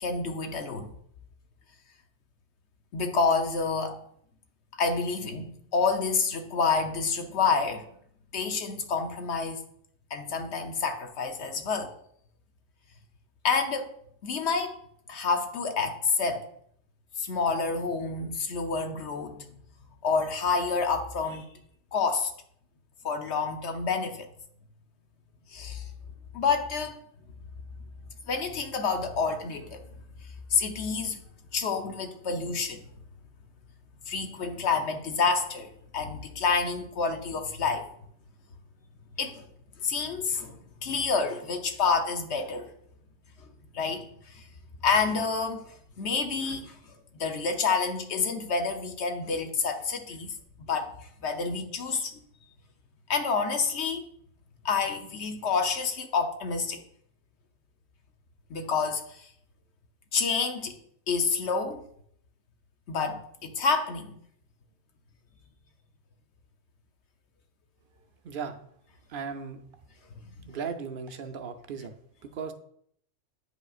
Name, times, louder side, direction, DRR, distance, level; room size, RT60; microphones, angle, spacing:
voice 1, 0.0-0.9 2.9-4.0 4.8-7.9 8.3-9.6 10.1-11.9 13.4-13.9 14.2-14.8 15.1-16.5 17.2-19.5 20.0-21.5 21.9-22.3 23.0-24.3 25.5-25.9 26.3-27.0 28.3-29.8 30.5-31.2 31.5-32.8 34.1-37.9 39.2-39.5 39.8-42.7 43.7-44.4 44.8-45.6 46.0-46.8 47.1-52.1 53.1-54.1 54.6-56.8 58.5-59.3 60.1-60.8 61.1-61.8 62.9-64.2 70.4-70.5, left 5 dB, 65° left, 5 dB, 1.0 m, -28 dB
voice 2, 68.2-68.6 69.1-69.6 70.5-72.5, right 6 dB, 55° right, 7 dB, 0.7 m, -37 dB
9.2 x 5.1 x 2.4 m, 0.68 s
omnidirectional pair, 1.2 m